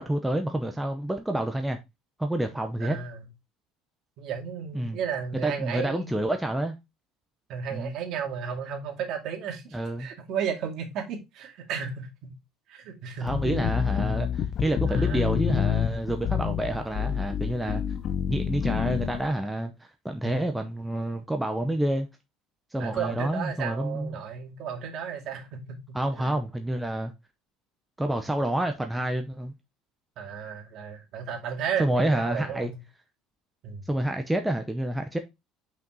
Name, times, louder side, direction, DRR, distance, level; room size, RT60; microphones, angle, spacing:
voice 1, 0.0-1.8 2.2-3.0 4.7-5.0 5.4-6.8 7.7-7.9 9.7-10.1 13.2-17.8 18.3-19.7 20.0-22.1 22.7-24.2 25.9-27.1 28.0-29.5 31.8-32.7 33.9-35.2, right 1 dB, 5° right, 0.6 m, -28 dB
voice 2, 2.8-3.3 4.2-6.2 7.5-12.3 12.7-13.3 14.9-15.4 17.6-17.7 20.2-20.3 22.8-26.3 30.2-32.8 33.6-33.9, right 7 dB, 50° right, 2.3 m, -34 dB
sound 1, 13.3-19.3, left 8 dB, 40° left, 0.8 m, -28 dB
5.8 x 5.3 x 3.8 m
cardioid pair, 155°, 0 cm